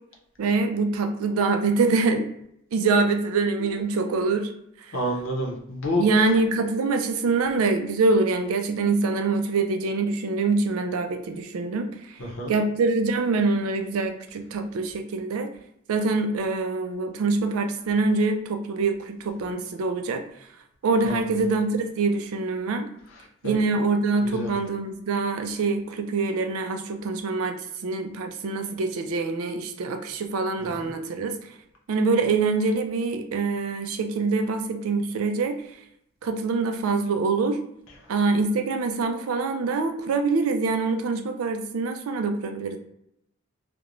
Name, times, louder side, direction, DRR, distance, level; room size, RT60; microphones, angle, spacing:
voice 1, 0.4-2.3 2.7-4.5 6.0-11.9 12.5-15.5 15.9-20.2 20.8-22.9 23.4-27.6 27.8-31.3 31.9-35.6 36.2-37.6 38.1-42.8, right 3 dB, 90° right, 7 dB, 0.4 m, -24 dB
voice 2, 4.9-6.1 12.2-12.5 21.1-21.2 23.4-23.6 24.3-24.5 30.6-30.9, left 1 dB, 65° left, 0 dB, 0.6 m, -29 dB
2.4 x 2.1 x 2.9 m, 0.74 s
head